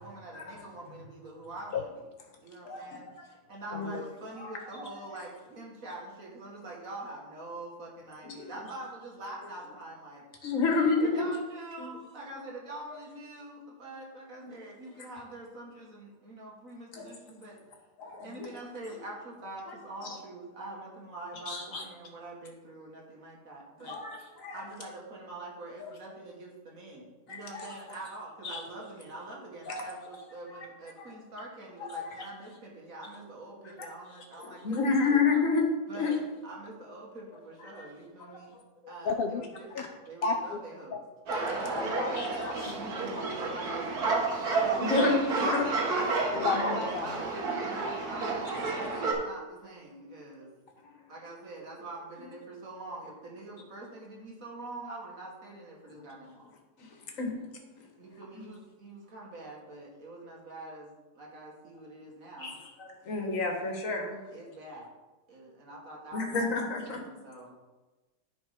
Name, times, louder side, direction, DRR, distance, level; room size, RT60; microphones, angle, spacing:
voice 1, 0.0-1.9 2.4-3.1 3.5-10.2 11.0-17.6 18.2-24.0 24.5-35.2 35.9-38.6 38.9-41.0 41.6-41.9 42.7-44.2 44.6-45.0 46.7-50.5 51.1-56.5 58.0-62.6 64.3-64.9 65.3-67.5, right 2 dB, 60° right, -2 dB, 2.2 m, -44 dB
voice 2, 2.6-3.0 3.7-3.9 4.4-4.5 4.8-4.9 8.2-8.5 10.4-11.2 11.8-11.9 14.4-14.5 16.9-17.1 18.0-18.5 20.0-20.2 21.5-21.8 23.8-24.6 25.8-25.9 27.3-27.7 28.4-28.6 29.7-30.0 30.5-30.6 31.0-31.1 31.8-32.3 34.4-35.7 36.0-36.1 37.8-37.9 38.3-38.4 38.8-38.9 39.8-39.9 41.4-41.5 42.1-42.8 44.1-44.2 44.5-46.4 48.2-48.9 56.0-56.1 56.8-56.9 57.2-57.4 58.3-58.4 62.4-64.3 66.1-67.0, left 4 dB, 55° left, 2 dB, 1.7 m, -31 dB
voice 3, 3.7-4.0 39.1-39.4 39.7-39.8 40.2-40.6 41.3-42.1 42.4-42.8 44.9-45.0 46.3-47.1, left 5 dB, 85° left, 5 dB, 0.5 m, -32 dB
sound 1, 41.3-49.1, right 3 dB, 75° right, 1.8 m, -31 dB
10.5 x 4.4 x 5.1 m, 1.2 s
omnidirectional pair, 1.6 m